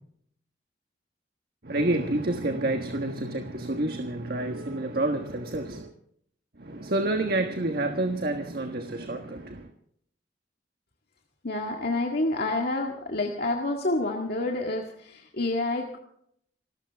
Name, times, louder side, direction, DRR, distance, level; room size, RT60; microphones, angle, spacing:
voice 1, 1.6-5.9 6.6-9.7, right 2 dB, 60° right, 5 dB, 1.4 m, -29 dB
voice 2, 11.4-16.0, left 2 dB, 60° left, 1 dB, 1.9 m, -28 dB
27.5 x 14.0 x 3.5 m, 0.68 s
head